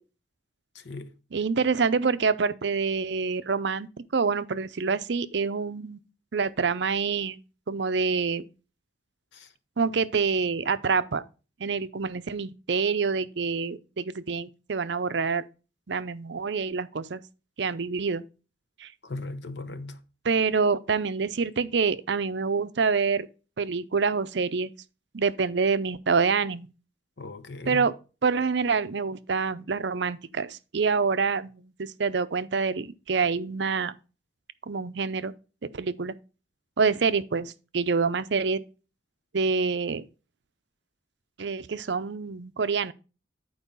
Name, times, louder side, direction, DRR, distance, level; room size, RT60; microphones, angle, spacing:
voice 1, 0.7-1.1 9.3-9.5 19.0-20.0 27.2-27.8, left 2 dB, 65° left, 0.9 m, -37 dB
voice 2, 1.3-6.1 6.3-7.4 7.7-8.4 9.8-11.2 11.6-15.4 15.9-17.2 17.6-18.2 18.8-18.9 20.2-23.3 23.6-24.7 25.1-26.7 27.6-27.9 28.2-34.0 34.7-35.3 35.6-36.1 36.8-38.6 39.3-40.0 41.4-42.9, right 5 dB, 60° right, 0.6 m, -26 dB
10.5 x 4.7 x 5.4 m
head